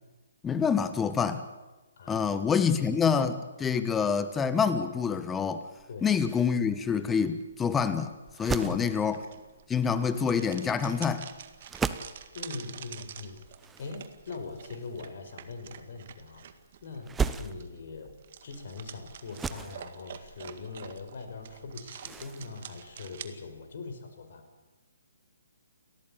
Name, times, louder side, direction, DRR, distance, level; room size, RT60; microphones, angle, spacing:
voice 1, 0.4-1.4 2.1-5.6 6.0-8.1 8.4-9.1 9.7-11.3, left 6 dB, 10° left, 12 dB, 1.4 m, -27 dB
voice 2, 2.0-2.3 2.7-3.0 5.9-6.1 8.6-8.9 12.3-13.4 13.8-16.4 16.8-18.1 18.4-24.4, left 4 dB, 55° left, 6 dB, 4.9 m, -42 dB
sound 1, 5.8-23.7, right 5 dB, 10° right, 0.9 m, -40 dB
sound 2, 8.3-23.3, right 9 dB, 50° right, 2.0 m, -48 dB
29.5 x 14.0 x 8.6 m, 1.2 s
figure-of-eight pair, 135°, 0 cm